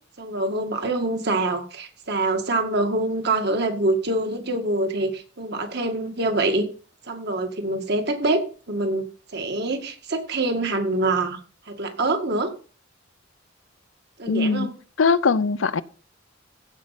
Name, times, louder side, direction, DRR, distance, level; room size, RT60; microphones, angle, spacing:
voice 1, 0.2-6.7 7.1-9.1 9.3-11.4 11.7-12.5 14.2-14.7, right 2 dB, 60° right, 2.1 m, -25 dB
voice 2, 14.3-14.7 15.0-15.8, left 4 dB, 85° left, 0.6 m, -21 dB
16.0 x 5.3 x 5.9 m
head